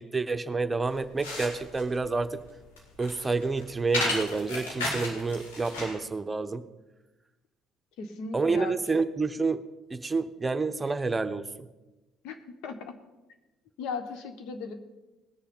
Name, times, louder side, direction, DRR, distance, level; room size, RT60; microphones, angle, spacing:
voice 1, 0.0-2.4 3.0-6.6 8.3-9.6 9.9-11.7, right 4 dB, 25° right, 10 dB, 0.8 m, -29 dB
sound 1, 0.9-6.0, left 2 dB, 90° left, 2.4 m, -34 dB
voice 2, 8.0-8.7 12.2-13.0 13.8-14.7, left 4 dB, 70° left, 8 dB, 1.3 m, -37 dB
19.0 x 6.8 x 5.5 m, 1.1 s
hypercardioid pair, 60°, 0 cm